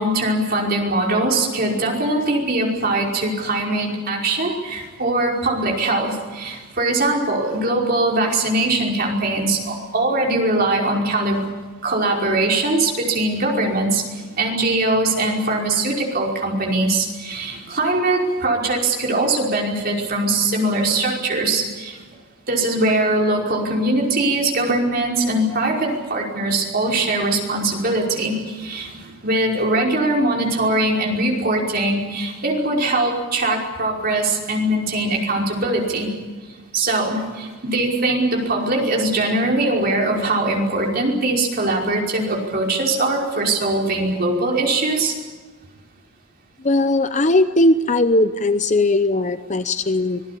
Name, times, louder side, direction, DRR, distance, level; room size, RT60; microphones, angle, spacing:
voice 1, 0.0-11.4 11.8-14.0 14.4-22.0 22.5-36.1 36.7-45.1, right 2 dB, 45° right, -1 dB, 5.3 m, -21 dB
voice 2, 46.6-50.2, left 2 dB, 35° left, 10 dB, 0.8 m, -18 dB
25.5 x 19.5 x 8.5 m, 1.4 s
head